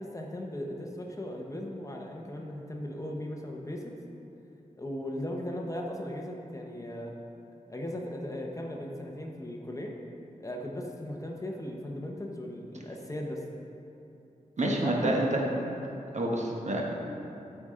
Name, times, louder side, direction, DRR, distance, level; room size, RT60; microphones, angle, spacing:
voice 1, 0.0-4.0 4.8-7.2 7.7-9.9 10.4-13.4 14.6-15.2, left 1 dB, 25° left, 0 dB, 0.8 m, -37 dB
voice 2, 14.6-15.4 16.1-16.9, right 1 dB, 55° right, -1 dB, 1.1 m, -28 dB
12.5 x 5.0 x 3.7 m, 2.8 s
wide cardioid pair, 105°, 14 cm